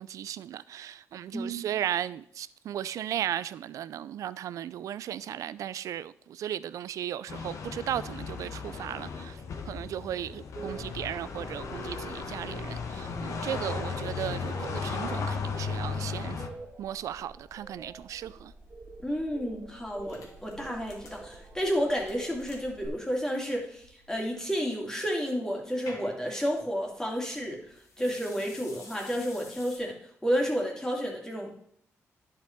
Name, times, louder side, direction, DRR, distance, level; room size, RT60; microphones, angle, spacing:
voice 1, 0.0-9.4 9.7-16.4 16.8-18.5, right 10 dB, 80° right, 0.3 m, -36 dB
sound 1, 7.3-16.5, left 5 dB, 70° left, 1.2 m, -36 dB
sound 2, 10.5-22.9, right 3 dB, 35° right, 1.3 m, -47 dB
voice 2, 19.0-30.0 30.2-31.5, equal, 10° left, 2.5 m, -31 dB
sound 3, 19.9-29.8, left 3 dB, 85° left, 2.3 m, -52 dB
10.5 x 5.1 x 4.5 m
cardioid pair, 85°, 6 cm